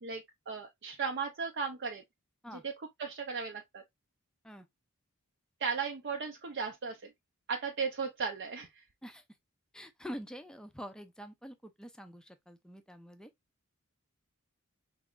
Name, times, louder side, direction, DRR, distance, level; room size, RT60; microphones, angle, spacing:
voice 1, 0.0-2.0 2.5-3.8 5.6-7.1 7.5-8.8, right 5 dB, 55° right, 0.6 m, -36 dB
voice 2, 9.7-13.3, equal, 5° left, 0.5 m, -46 dB
4.7 x 3.0 x 2.4 m
head